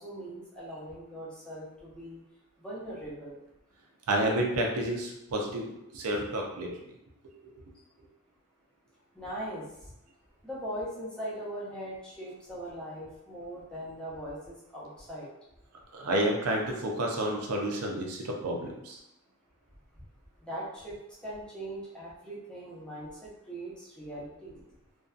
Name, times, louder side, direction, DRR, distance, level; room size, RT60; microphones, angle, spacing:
voice 1, 0.0-2.2 2.6-3.4 9.2-9.6 10.4-15.3 20.4-21.0 21.2-24.6, right 1 dB, 5° left, -7 dB, 0.6 m, -40 dB
voice 2, 4.1-6.7 15.9-19.0, right 1 dB, 85° right, 1 dB, 0.5 m, -30 dB
2.6 x 2.3 x 2.4 m, 0.89 s
head